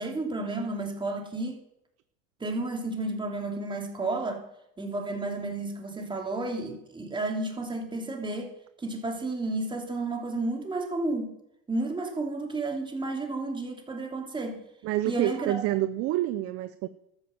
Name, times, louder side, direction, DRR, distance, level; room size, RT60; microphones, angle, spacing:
voice 1, 0.0-1.6 2.4-4.4 4.8-8.5 8.8-11.3 11.7-14.6 15.0-15.6, right 2 dB, 10° right, 2 dB, 3.0 m, -32 dB
voice 2, 14.8-16.9, right 15 dB, 35° right, 13 dB, 0.7 m, -28 dB
13.0 x 9.9 x 7.2 m, 0.80 s
supercardioid pair, 120°, 40 cm